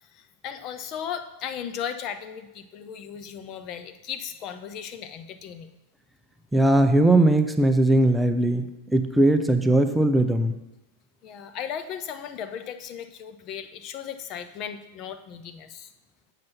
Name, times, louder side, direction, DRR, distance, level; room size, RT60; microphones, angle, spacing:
voice 1, 0.0-5.7 11.2-15.9, left 8 dB, 35° left, 9 dB, 0.6 m, -36 dB
voice 2, 6.5-10.6, right 1 dB, 5° right, 7 dB, 0.6 m, -20 dB
7.6 x 5.8 x 5.7 m, 0.97 s
figure-of-eight pair, 90°, 0 cm